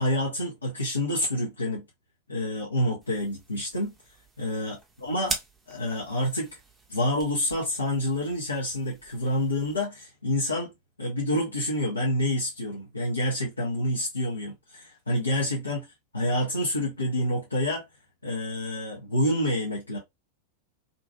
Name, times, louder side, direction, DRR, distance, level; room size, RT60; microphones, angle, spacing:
voice 1, 0.0-1.8 2.3-3.9 4.4-5.4 5.7-6.5 6.9-10.7 11.0-15.8 16.1-17.8 18.2-20.0, left 1 dB, 80° left, 0.7 m, -28 dB
sound 1, 3.0-9.8, right 2 dB, 10° right, 0.6 m, -42 dB
2.6 x 2.3 x 2.2 m
figure-of-eight pair, 90°, 0 cm